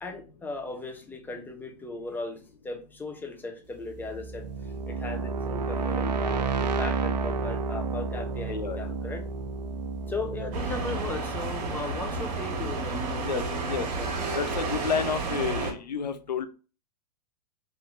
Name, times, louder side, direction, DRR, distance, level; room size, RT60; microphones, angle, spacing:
voice 1, 0.0-9.2 10.1-14.1, left 3 dB, 10° left, 4 dB, 0.7 m, -37 dB
sound 1, 3.8-12.7, right 4 dB, 85° right, 0.5 m, -31 dB
voice 2, 8.5-8.8 10.4-10.5 13.2-13.9 14.3-16.5, left 6 dB, 85° left, 9 dB, 0.5 m, -30 dB
sound 2, 10.5-15.7, right 3 dB, 60° right, 1.2 m, -31 dB
3.4 x 2.7 x 3.7 m, 0.35 s
hypercardioid pair, 110°, 21 cm